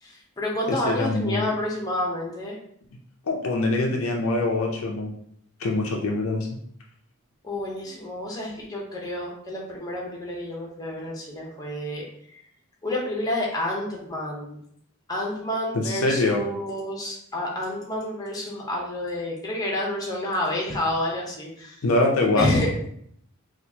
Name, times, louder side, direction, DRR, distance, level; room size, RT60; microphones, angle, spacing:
voice 1, 0.0-2.6 7.4-12.1 12.3-12.4 12.8-14.6 15.1-21.8 22.4-22.7, left 1 dB, 15° left, -2 dB, 0.8 m, -29 dB
voice 2, 0.7-1.4 3.3-5.1 5.6-6.5 15.7-16.4 21.8-22.5, left 2 dB, 65° left, 0 dB, 0.5 m, -24 dB
4.3 x 2.4 x 2.8 m, 0.68 s
head